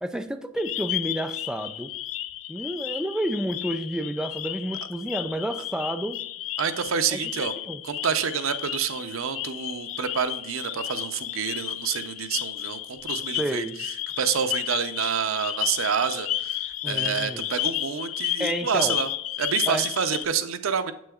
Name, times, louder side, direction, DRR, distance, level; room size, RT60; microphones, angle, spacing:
voice 1, 0.0-1.9 2.5-6.3 7.1-7.8 13.4-13.8 16.8-17.4 18.4-19.0 19.7-19.9, right 1 dB, 5° right, 8 dB, 0.3 m, -30 dB
sound 1, 0.6-20.3, left 13 dB, 70° left, 0.4 m, -32 dB
voice 2, 6.6-7.5 7.8-19.1 19.4-20.9, right 7 dB, 90° right, 10 dB, 0.6 m, -28 dB
7.7 x 6.1 x 2.4 m, 0.79 s
head